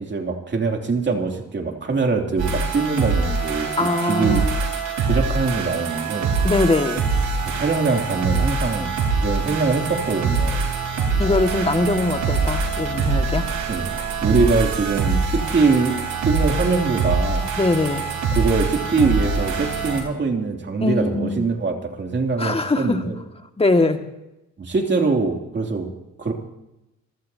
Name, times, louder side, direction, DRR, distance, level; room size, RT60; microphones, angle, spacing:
voice 1, 0.1-4.5 5.0-6.3 7.5-8.9 9.2-10.7 13.7-16.0 16.2-17.5 18.3-23.2 24.6-25.9 26.2-26.3, right 4 dB, 35° right, 3 dB, 2.9 m, -23 dB
Happy Dance Groove Short Song, 2.4-20.0, right 4 dB, 75° right, 3.7 m, -24 dB
voice 2, 3.8-4.5 6.4-7.1 11.2-13.5 17.6-18.0 20.8-21.5 22.4-23.1 23.6-24.0, left 2 dB, 20° left, 6 dB, 1.9 m, -21 dB
26.5 x 15.5 x 2.8 m, 0.90 s
cardioid pair, 90°, 30 cm